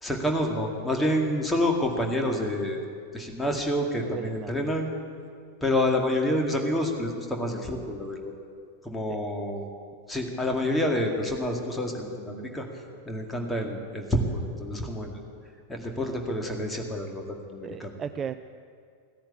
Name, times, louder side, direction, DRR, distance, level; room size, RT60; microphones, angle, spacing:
voice 1, 0.0-2.8 3.1-4.9 5.6-8.3 8.8-9.7 10.1-12.6 13.1-15.1 15.7-17.2 17.5-17.9, left 1 dB, 10° left, 2 dB, 2.2 m, -28 dB
voice 2, 4.0-4.5 9.1-9.2 17.6-18.3, right 8 dB, 25° right, 11 dB, 0.4 m, -36 dB
16.0 x 10.5 x 8.2 m, 2.3 s
figure-of-eight pair, 90°, 0 cm